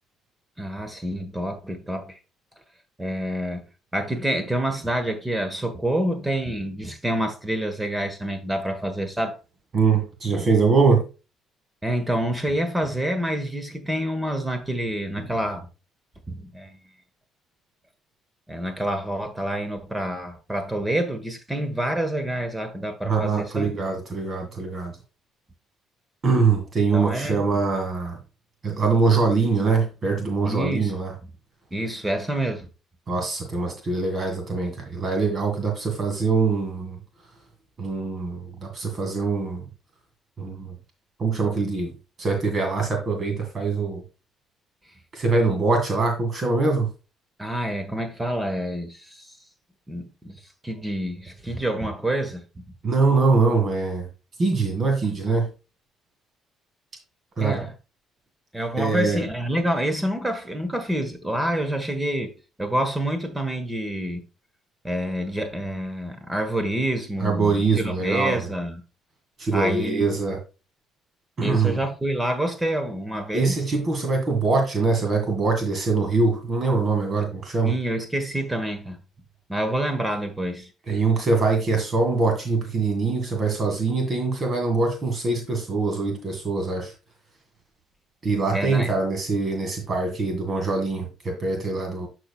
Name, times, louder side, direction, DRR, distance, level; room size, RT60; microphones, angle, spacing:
voice 1, 0.6-2.2 3.0-3.6 3.9-9.4 11.8-15.7 16.3-16.8 18.5-23.6 26.9-27.4 30.4-30.9 31.7-32.7 47.4-49.3 49.9-52.6 57.4-57.7 58.5-62.3 62.6-64.2 64.8-68.8 69.5-70.1 71.4-73.6 77.6-79.0 79.5-80.7 88.5-88.9, right 1 dB, 10° right, 1.3 m, -27 dB
voice 2, 9.7-11.1 23.0-25.0 26.2-28.2 28.6-31.1 33.1-37.0 37.8-39.7 40.4-40.8 41.2-41.9 42.2-44.0 45.1-46.9 52.8-54.1 54.4-55.5 57.4-57.6 58.8-59.2 67.2-68.5 69.4-70.4 71.4-71.8 73.3-77.8 80.9-86.9 88.2-92.1, right 4 dB, 40° right, 2.0 m, -23 dB
12.0 x 4.5 x 2.3 m
cardioid pair, 95°, 0 cm